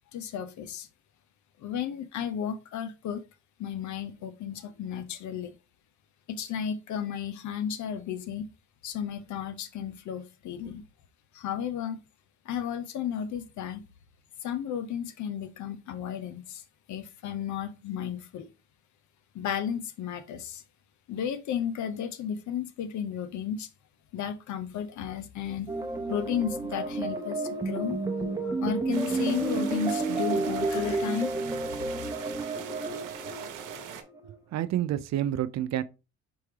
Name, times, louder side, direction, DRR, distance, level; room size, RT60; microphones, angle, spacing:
voice 1, 0.1-0.9 1.6-3.2 3.6-5.5 6.3-8.5 8.8-10.8 11.3-12.0 12.5-13.8 14.4-16.6 16.9-18.5 19.3-20.6 21.1-23.7 24.1-25.7 26.1-28.0 28.4-31.6, left 8 dB, 70° left, 0.7 m, -33 dB
sound 1, 25.7-34.3, right 3 dB, 10° right, 0.7 m, -31 dB
sound 2, 28.9-34.0, right 8 dB, 85° right, 0.8 m, -41 dB
voice 2, 34.2-35.8, right 12 dB, 60° right, 0.5 m, -29 dB
4.5 x 3.6 x 3.2 m
cardioid pair, 90°, 30 cm